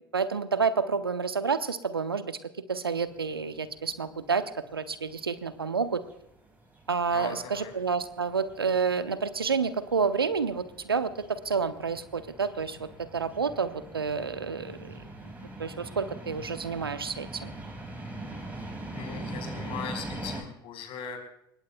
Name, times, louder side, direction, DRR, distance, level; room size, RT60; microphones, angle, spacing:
voice 1, 0.1-2.4 2.7-4.4 4.7-6.0 6.9-14.9 15.6-17.5, right 5 dB, 90° right, 11 dB, 0.9 m, -29 dB
sound 1, 3.0-20.4, right 2 dB, 15° right, 5.6 m, -43 dB
voice 2, 7.1-7.7 18.9-21.2, left 7 dB, 50° left, 4 dB, 4.7 m, -39 dB
25.0 x 20.5 x 2.3 m, 0.77 s
figure-of-eight pair, 75°, 12 cm